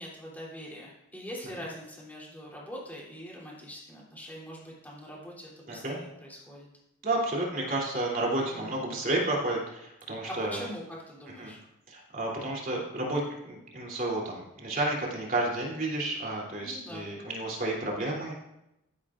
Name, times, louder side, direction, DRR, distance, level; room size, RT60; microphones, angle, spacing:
voice 1, 0.0-6.7 8.5-8.8 10.2-11.6 16.6-17.0, equal, 10° left, -5 dB, 3.1 m, -43 dB
voice 2, 5.7-6.0 7.0-10.6 11.4-11.5 11.9-18.3, right 2 dB, 40° right, -3 dB, 3.1 m, -31 dB
14.5 x 11.0 x 2.5 m, 0.86 s
head